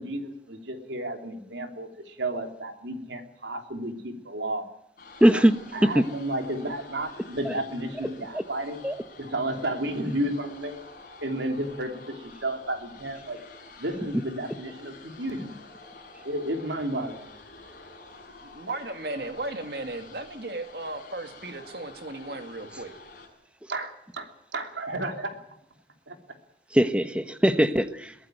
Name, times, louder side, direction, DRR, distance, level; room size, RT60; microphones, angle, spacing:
voice 1, 0.0-4.7 5.3-5.4 5.7-8.8 9.2-10.8 11.2-13.4 13.8-15.5 16.2-17.3 23.7-25.4 26.1-26.4, right 1 dB, 85° right, 5 dB, 3.1 m, -32 dB
sound 1, 5.0-23.3, left 3 dB, 50° left, 6.8 m, -48 dB
voice 2, 5.2-5.6 5.9-6.0 7.4-7.5 8.3-8.4 8.8-8.9 26.7-28.1, equal, 5° right, 10 dB, 1.1 m, -21 dB
voice 3, 18.4-22.9, right 2 dB, 60° right, 6 dB, 2.4 m, -35 dB
22.5 x 15.5 x 9.1 m, 0.73 s
head